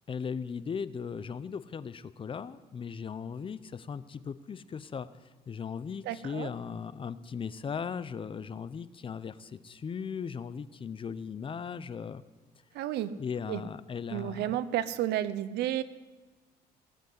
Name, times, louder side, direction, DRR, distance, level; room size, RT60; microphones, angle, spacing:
voice 1, 0.1-5.1 5.5-12.2 13.2-14.6, left 6 dB, 30° left, 15 dB, 0.7 m, -38 dB
voice 2, 6.1-6.5 12.7-13.1 13.5-13.6 14.1-15.8, right 12 dB, 80° right, 16 dB, 0.8 m, -31 dB
18.5 x 8.1 x 8.1 m, 1.2 s
cardioid pair, 110°, 17 cm